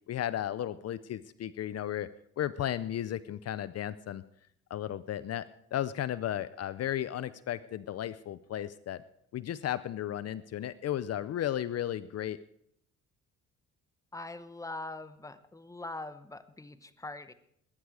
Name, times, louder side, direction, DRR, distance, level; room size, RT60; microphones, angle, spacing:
voice 1, 0.1-2.1 2.4-4.2 4.7-9.0 9.3-12.4, left 11 dB, 55° left, 16 dB, 0.6 m, -34 dB
voice 2, 14.1-17.3, left 2 dB, 10° left, 12 dB, 1.0 m, -42 dB
20.5 x 9.6 x 4.8 m, 0.73 s
cardioid pair, 90°, 30 cm